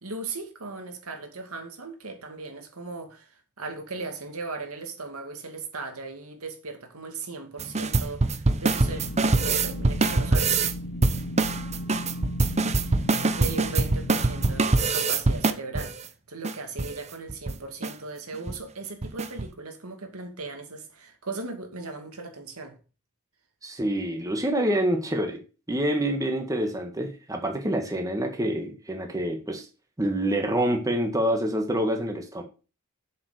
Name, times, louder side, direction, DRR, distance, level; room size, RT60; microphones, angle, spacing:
voice 1, 0.0-9.0 9.4-10.5 12.8-13.0 13.4-16.0 16.3-22.7, right 3 dB, 85° right, 2.4 m, -37 dB
sound 1, 7.6-10.7 11.0-16.0 16.4-16.5 16.8-16.9 17.3-17.5 17.8-17.9 18.3-18.6 19.0-19.5, right 3 dB, 30° right, 0.8 m, -24 dB
sound 2, 8.6-14.6, left 1 dB, 60° left, 1.0 m, -36 dB
voice 2, 23.6-25.4 25.7-29.7 30.0-32.4, right 1 dB, 15° right, 1.6 m, -27 dB
7.3 x 7.2 x 6.7 m
head